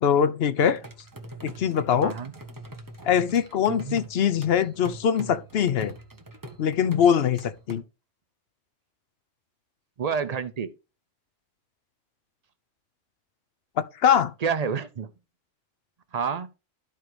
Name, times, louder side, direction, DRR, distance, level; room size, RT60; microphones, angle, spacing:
voice 1, 0.0-0.8 1.4-2.1 3.0-5.9 6.6-7.8 13.8-14.3, left 8 dB, 60° left, 0.8 m, -22 dB
sound 1, 0.6-7.8, right 1 dB, 15° right, 1.0 m, -43 dB
voice 2, 10.0-10.7 14.4-15.1 16.1-16.5, right 6 dB, 50° right, 0.5 m, -28 dB
13.0 x 4.6 x 3.3 m
omnidirectional pair, 1.3 m